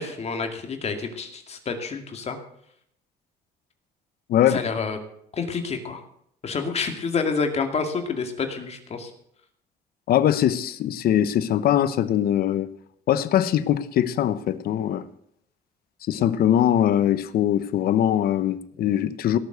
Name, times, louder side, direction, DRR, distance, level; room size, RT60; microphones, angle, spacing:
voice 1, 0.0-2.4 4.5-5.0 5.4-6.0 6.4-9.1, left 5 dB, 40° left, 2.3 m, -28 dB
voice 2, 10.1-12.7 13.1-15.0 16.1-19.4, left 10 dB, 65° left, 1.0 m, -22 dB
17.5 x 7.4 x 8.1 m
cardioid pair, 110°, 17 cm